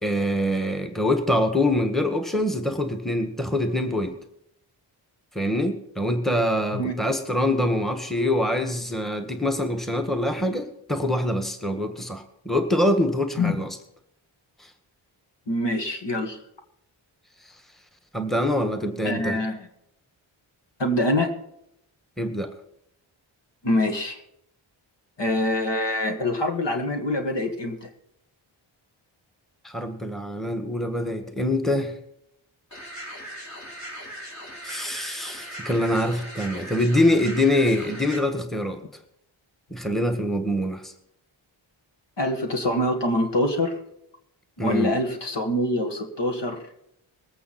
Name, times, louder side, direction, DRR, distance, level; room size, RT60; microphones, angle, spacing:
voice 1, 0.0-4.2 5.4-13.7 18.1-19.4 22.2-22.5 29.6-31.9 34.6-38.8 39.7-40.9 44.6-44.9, left 1 dB, ahead, 7 dB, 1.7 m, -24 dB
voice 2, 15.5-16.4 19.0-19.7 20.8-21.3 23.6-24.2 25.2-27.9 42.2-43.8 44.6-46.6, left 1 dB, 55° left, 4 dB, 2.2 m, -25 dB
sound 1, 32.7-38.2, equal, 35° left, 4.1 m, -39 dB
21.0 x 8.5 x 4.4 m, 0.76 s
cardioid pair, 45°, 50 cm